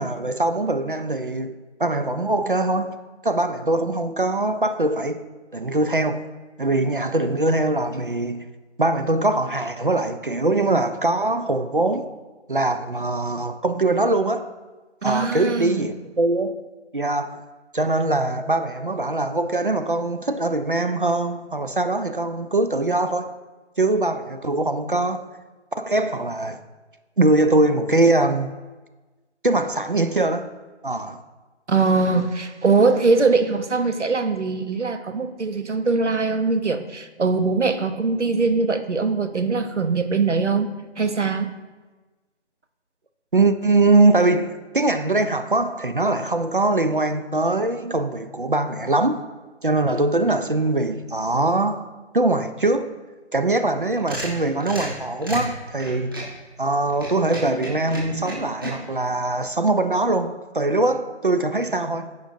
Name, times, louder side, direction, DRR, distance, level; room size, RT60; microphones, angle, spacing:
voice 1, 0.0-3.0 3.2-5.3 5.5-6.3 6.6-8.4 8.8-12.1 12.5-14.5 15.0-16.6 16.9-17.4 17.7-23.4 23.8-25.3 25.8-26.6 27.2-28.5 29.4-30.5 30.8-31.2 43.3-49.2 49.6-51.9 52.1-52.9 53.3-56.1 56.6-62.1, right 2 dB, 50° right, 0.5 m, -22 dB
voice 2, 15.0-15.9 31.7-40.7 41.0-41.5, right 4 dB, 80° right, 0.9 m, -21 dB
sound 1, 53.7-56.4 56.9-58.7, right 1 dB, 20° right, 1.2 m, -32 dB
14.0 x 5.2 x 2.7 m
figure-of-eight pair, 165°, 35 cm